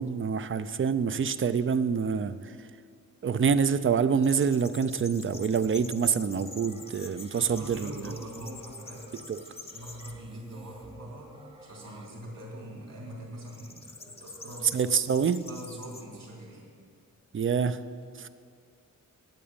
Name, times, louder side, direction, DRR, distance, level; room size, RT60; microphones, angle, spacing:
voice 1, 0.0-2.7 3.2-8.2 9.3-9.4 14.7-15.4 17.3-17.8 18.2-18.3, right 6 dB, 40° right, 14 dB, 0.5 m, -26 dB
sound 1, 4.2-10.1 10.7-11.2 13.4-16.0, left 3 dB, 20° left, 0.8 m, -47 dB
sound 2, 5.3-12.1, right 3 dB, 15° right, 0.9 m, -53 dB
voice 2, 7.3-9.4 9.7-14.9 15.5-16.7, right 1 dB, 70° right, -2 dB, 3.0 m, -43 dB
9.0 x 8.5 x 8.8 m, 2.2 s
wide cardioid pair, 110°, 34 cm